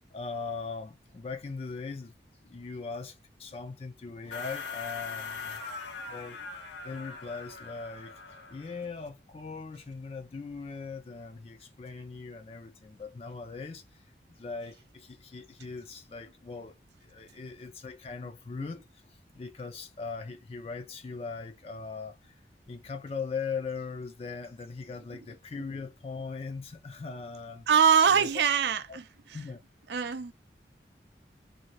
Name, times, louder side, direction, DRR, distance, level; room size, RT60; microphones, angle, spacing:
voice 1, 0.1-2.1 2.4-5.6 6.1-6.4 6.8-8.2 8.5-22.3 22.7-27.7 28.1-28.3 28.9-29.0 29.3-29.6, left 4 dB, 35° left, 0.3 m, -40 dB
sound 1, 4.3-8.8, left 4 dB, 85° left, 0.7 m, -41 dB
voice 2, 27.7-29.4 29.9-30.3, right 7 dB, 75° right, 0.4 m, -24 dB
2.7 x 2.3 x 3.0 m
head